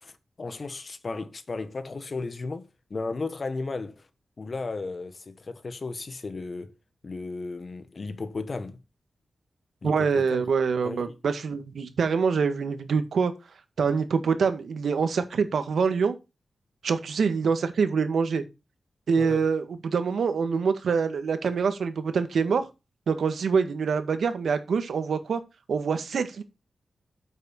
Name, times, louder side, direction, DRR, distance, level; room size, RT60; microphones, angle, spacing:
voice 1, 0.0-4.1 4.4-6.7 7.0-8.8 9.8-10.4 10.8-11.1 19.2-19.5, left 3 dB, 40° left, 1.4 m, -35 dB
voice 2, 9.8-13.3 13.8-16.1 16.8-18.4 19.1-22.6 23.1-25.4 25.7-26.4, right 5 dB, 85° right, 1.8 m, -25 dB
9.1 x 8.0 x 4.4 m
wide cardioid pair, 150°, 0 cm